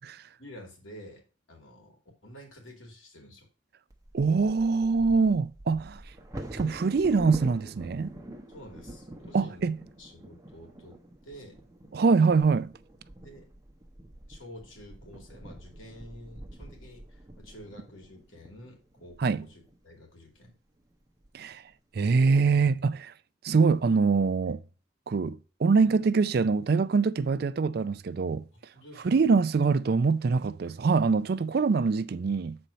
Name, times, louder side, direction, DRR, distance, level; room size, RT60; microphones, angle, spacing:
voice 1, 0.4-2.0 2.2-3.5 8.5-9.7 10.0-11.6 13.2-13.5 14.3-20.5 28.7-29.2, equal, 90° left, 2.7 m, -49 dB
Bird vocalization bird call bird song / Wind / Thunder, 3.9-19.8 20.4-20.5 20.9-21.3 21.7-22.2, right 1 dB, 15° right, 1.0 m, -45 dB
voice 2, 4.1-6.0 6.5-8.1 9.3-9.8 11.9-12.7 19.2-19.5 21.3-21.6 21.9-23.1 23.4-24.6 25.1-28.4 29.0-32.6, right 4 dB, 50° right, 0.4 m, -24 dB
6.8 x 4.4 x 5.1 m
head